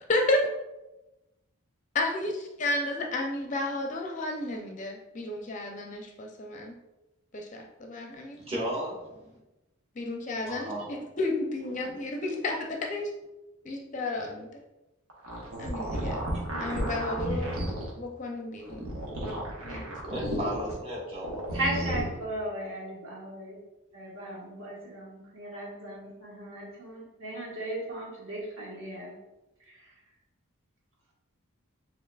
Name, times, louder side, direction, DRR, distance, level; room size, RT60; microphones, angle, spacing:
voice 1, 0.1-0.4 1.9-6.7 7.3-8.4 10.0-13.1 13.6-14.6 15.6-16.2 16.6-17.5 17.9-18.8 19.6-19.8, left 2 dB, 35° left, 1 dB, 0.5 m, -32 dB
voice 2, 8.3-9.4 10.4-10.9 16.3-16.4 20.0-21.6, right 1 dB, 25° right, -6 dB, 1.3 m, -35 dB
sound 1, 15.1-17.9 18.6-20.7 21.1-22.0, right 1 dB, 85° right, 1.1 m, -33 dB
voice 3, 21.5-23.6 23.9-29.1 29.7-29.8, right 1 dB, 65° right, -4 dB, 1.4 m, -36 dB
7.0 x 2.8 x 2.3 m, 1.0 s
head